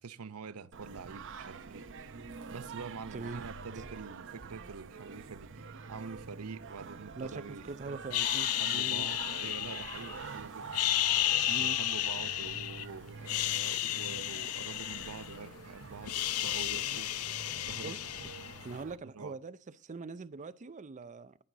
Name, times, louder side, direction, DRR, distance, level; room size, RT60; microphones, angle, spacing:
voice 1, 0.0-1.8 2.5-7.7 8.4-10.7 11.5-17.2 17.7-17.9 19.0-19.4, right 5 dB, 80° right, 0.7 m, -46 dB
Singing, 0.7-19.0, right 5 dB, 60° right, 0.9 m, -46 dB
voice 2, 3.1-3.4 7.2-9.1 11.5-11.8 14.4-14.5 16.8-17.0 17.8-18.0 18.6-21.4, right 3 dB, 35° right, 0.5 m, -43 dB
sound 1, 8.1-10.3 10.7-12.8 13.2-15.6 15.8-18.7, left 14 dB, 75° left, 0.5 m, -33 dB
18.5 x 6.2 x 3.9 m
head